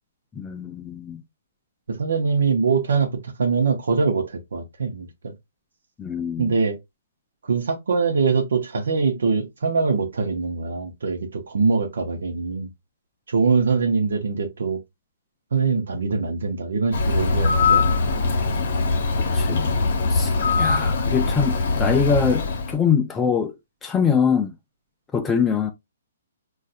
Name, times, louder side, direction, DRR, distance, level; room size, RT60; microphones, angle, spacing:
voice 1, 0.4-1.2 6.0-6.5 19.3-19.7 20.1-20.3 20.6-23.5 23.8-24.5 25.1-25.7, left 6 dB, 10° left, 0.3 m, -23 dB
voice 2, 1.9-5.3 6.4-6.8 7.4-12.7 13.3-14.8 15.5-17.8 19.5-19.6, right 4 dB, 80° right, 0.7 m, -23 dB
Bird, 16.9-22.8, left 3 dB, 55° left, 0.9 m, -22 dB
4.0 x 2.4 x 2.5 m
hypercardioid pair, 160°, 0 cm